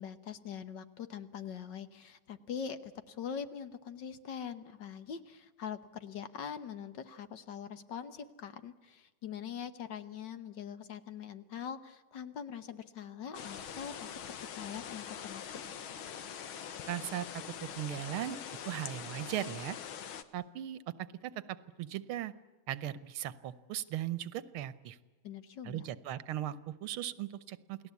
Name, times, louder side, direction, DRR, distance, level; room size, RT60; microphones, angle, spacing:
voice 1, 0.0-14.1 14.6-15.4 25.2-25.9, left 7 dB, 60° left, 11 dB, 1.7 m, -43 dB
sound 1, 13.3-20.2, left 8 dB, 75° left, 1.9 m, -43 dB
voice 2, 16.9-17.3 17.6-18.4 18.7-19.8 20.3-20.9 21.2-22.3 22.7-25.0 25.7-27.8, right 12 dB, 85° right, 16 dB, 1.8 m, -38 dB
28.5 x 18.0 x 8.3 m, 1.3 s
omnidirectional pair, 2.3 m